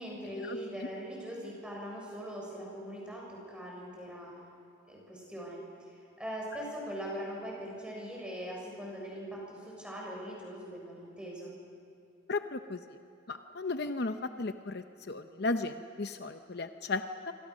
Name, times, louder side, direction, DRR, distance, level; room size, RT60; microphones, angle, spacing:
voice 1, 0.0-4.3 4.9-11.5, equal, 5° right, -3 dB, 6.9 m, -41 dB
voice 2, 12.3-12.8 13.3-17.3, left 3 dB, 55° left, 8 dB, 0.7 m, -35 dB
27.5 x 25.5 x 6.4 m, 2.6 s
head